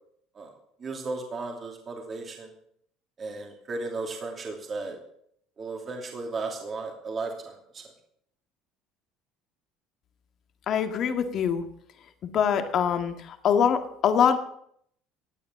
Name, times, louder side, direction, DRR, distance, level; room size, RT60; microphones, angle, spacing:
voice 1, 0.3-2.5 3.2-5.0 5.6-7.8, right 3 dB, 35° right, 2 dB, 2.7 m, -35 dB
voice 2, 10.7-11.6 12.2-14.4, left 8 dB, 50° left, 7 dB, 2.0 m, -24 dB
15.5 x 8.8 x 7.4 m, 0.69 s
supercardioid pair, 95°, 0 cm